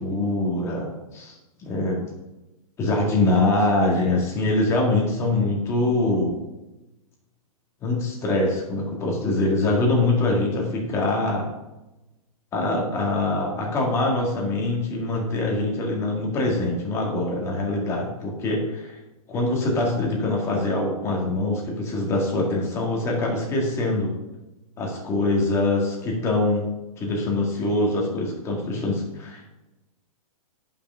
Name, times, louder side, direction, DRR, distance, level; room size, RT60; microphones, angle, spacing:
voice 1, 0.0-1.3 1.6-2.0 2.8-6.3 7.8-11.5 12.5-19.0 19.3-24.1 24.8-26.7 27.0-29.4, left 2 dB, 15° left, -1 dB, 1.9 m, -24 dB
10.0 x 5.9 x 5.5 m, 1.0 s
hypercardioid pair, 170°, 19 cm